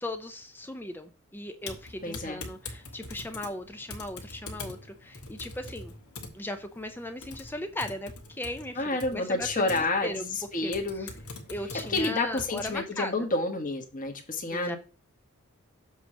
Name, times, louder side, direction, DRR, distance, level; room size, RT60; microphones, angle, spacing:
voice 1, 0.0-5.9 6.3-8.8 9.1-10.2 10.6-10.7 11.0-11.1 11.5-13.1 14.5-14.8, left 1 dB, 10° left, 0.5 m, -37 dB
Typing, 1.6-12.8, left 3 dB, 85° left, 1.5 m, -44 dB
voice 2, 2.0-2.4 8.7-11.1 11.9-14.8, left 2 dB, 40° left, 1.3 m, -29 dB
7.2 x 3.1 x 6.1 m
head